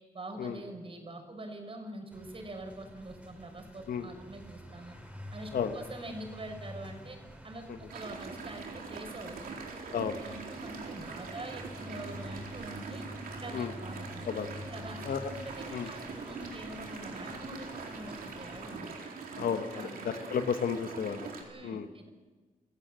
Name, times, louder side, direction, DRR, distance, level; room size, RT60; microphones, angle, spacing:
voice 1, 0.1-5.0 5.3-7.2 7.4-9.8 10.2-13.0 13.4-14.3 14.7-19.0 19.4-19.5 19.7-20.3 21.5-22.1, right 1 dB, 40° right, 4 dB, 6.0 m, -45 dB
sound 1, 2.1-18.8, equal, 10° right, 5.6 m, -48 dB
sound 2, 7.9-21.4, right 4 dB, 90° right, 4.2 m, -43 dB
voice 2, 19.4-21.3 21.6-21.9, left 7 dB, 85° left, 8 dB, 1.6 m, -32 dB
28.5 x 16.0 x 7.9 m, 1.3 s
cardioid pair, 100°, 15 cm